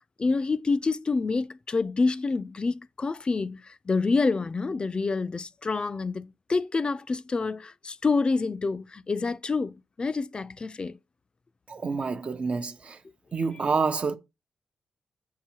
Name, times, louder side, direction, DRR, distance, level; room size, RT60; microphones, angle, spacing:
voice 1, 0.2-11.0, left 4 dB, 40° left, 0.4 m, -27 dB
voice 2, 11.7-13.0 13.3-14.2, right 4 dB, 50° right, 0.7 m, -28 dB
7.3 x 4.7 x 2.8 m
supercardioid pair, 50°, 3 cm